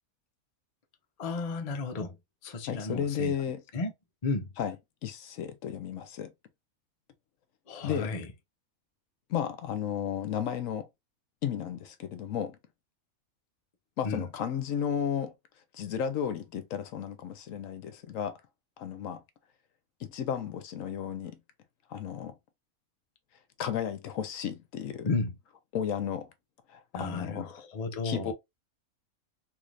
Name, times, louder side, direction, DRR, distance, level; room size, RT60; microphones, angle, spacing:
voice 1, 1.2-2.2 2.4-3.3 3.7-3.9 4.2-4.5 7.7-8.3 14.0-14.2 25.0-25.3 26.9-28.3, left 3 dB, 40° left, 0.5 m, -33 dB
voice 2, 2.7-3.6 4.6-4.8 5.0-6.3 7.8-8.2 9.3-10.9 11.4-12.6 14.0-15.3 15.7-18.4 18.8-19.2 20.0-21.4 21.9-22.4 23.6-25.1 25.7-26.3 26.7-27.5 28.0-28.3, left 8 dB, 70° left, 1.0 m, -33 dB
3.4 x 3.2 x 2.5 m
omnidirectional pair, 1.5 m